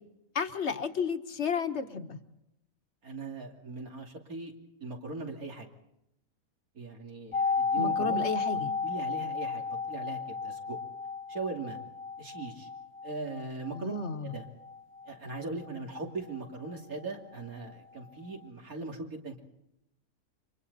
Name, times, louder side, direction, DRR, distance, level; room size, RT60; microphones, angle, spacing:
voice 1, 0.3-2.2 7.8-8.7 13.7-14.4, left 5 dB, 50° left, 8 dB, 1.5 m, -32 dB
voice 2, 3.0-4.5 4.8-5.7 6.7-8.3 8.8-10.8 11.3-11.8 12.2-12.7 13.0-13.9 14.2-14.5 15.1-19.4, right 3 dB, 80° right, 1 dB, 3.3 m, -39 dB
sound 1, 7.3-17.1 17.3-17.4, left 5 dB, 70° left, 1.5 m, -34 dB
29.5 x 25.0 x 4.2 m, 0.85 s
omnidirectional pair, 1.5 m